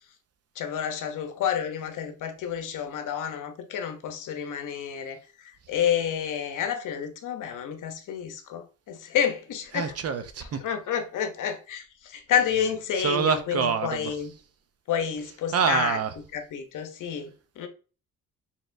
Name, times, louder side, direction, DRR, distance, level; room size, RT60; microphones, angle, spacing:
voice 1, 0.6-9.9 10.6-14.3 14.9-16.0 16.3-17.7, left 8 dB, 70° left, 0.8 m, -29 dB
voice 2, 9.7-10.6 13.0-14.1 15.5-16.1, right 6 dB, 50° right, 0.6 m, -26 dB
4.1 x 3.6 x 2.5 m
cardioid pair, 105°, 32 cm